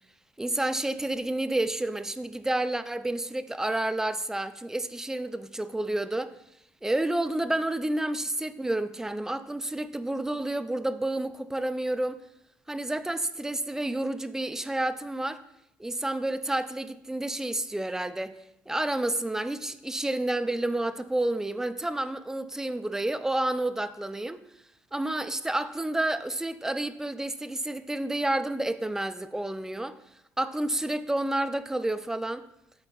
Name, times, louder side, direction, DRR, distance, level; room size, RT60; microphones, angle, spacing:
voice 1, 0.4-6.3 6.8-12.2 12.7-15.4 15.8-18.3 18.7-24.4 24.9-30.0 30.4-32.4, right 1 dB, 5° right, 0.3 m, -30 dB
11.5 x 4.0 x 2.3 m
cardioid pair, 100°, 7 cm